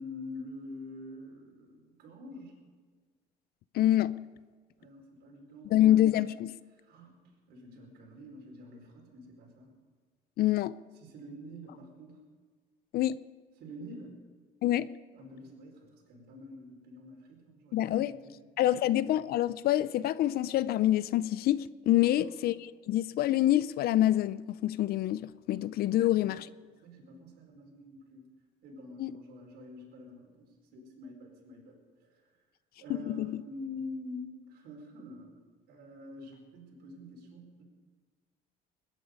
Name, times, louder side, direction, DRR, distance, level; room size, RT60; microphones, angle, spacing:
voice 1, 0.0-2.6 4.8-5.9 6.8-7.2 7.5-9.7 11.0-12.2 13.6-14.1 15.1-18.4 22.0-22.4 26.0-26.3 26.8-28.2 28.6-31.8 32.8-35.3 35.7-37.6, left 2 dB, 75° right, 4.6 m, -46 dB
voice 2, 3.7-4.2 5.7-6.6 10.4-10.8 12.9-13.2 14.6-14.9 17.7-18.1 18.6-22.5 22.9-26.5 29.0-29.1 33.1-33.4, left 13 dB, 65° left, 0.5 m, -26 dB
20.5 x 10.5 x 5.4 m
cardioid pair, 110°, 17 cm